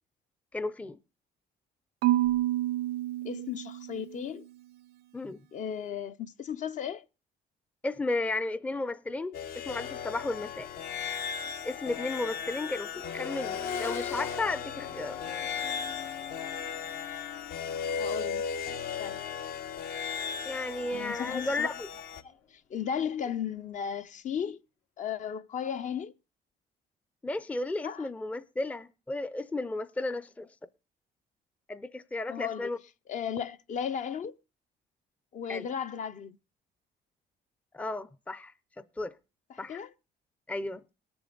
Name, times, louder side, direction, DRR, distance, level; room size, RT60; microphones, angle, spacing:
voice 1, 0.5-1.0 5.1-5.4 7.8-10.7 11.6-15.2 20.4-21.9 27.2-30.5 31.7-32.8 35.5-35.7 37.7-39.1 39.6-39.8 40.5-40.8, left 2 dB, 10° left, 0.5 m, -34 dB
Marimba xylophone / Wood, 2.0-4.2, right 15 dB, 75° right, 0.5 m, -29 dB
voice 2, 3.2-4.4 5.5-7.0 18.0-18.4 19.0-19.2 20.9-21.7 22.2-24.6 25.0-26.1 27.8-28.1 32.3-32.7 33.1-34.3 35.3-36.4 39.5-39.9, left 8 dB, 50° left, 0.6 m, -35 dB
sound 1, 9.3-22.2, left 7 dB, 65° left, 1.0 m, -36 dB
Accelerating revving vroom, 10.7-20.5 22.2-22.3, left 7 dB, 85° left, 2.2 m, -44 dB
19.5 x 7.0 x 3.8 m
cardioid pair, 110°, 17 cm